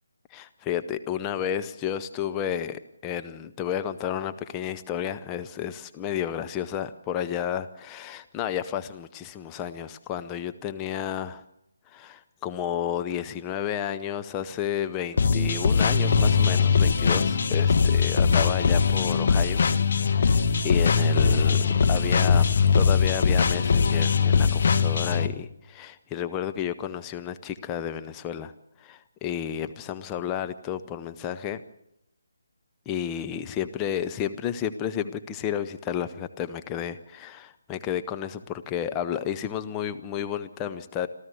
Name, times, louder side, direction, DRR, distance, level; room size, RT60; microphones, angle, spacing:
voice 1, 0.3-11.4 11.9-19.6 20.0-28.5 28.8-31.6 32.9-41.1, left 9 dB, 15° left, 9 dB, 0.7 m, -32 dB
sound 1, 15.2-25.3, left 5 dB, 45° left, 1.5 m, -21 dB
26.5 x 14.5 x 7.9 m, 0.81 s
figure-of-eight pair, 145°, 0 cm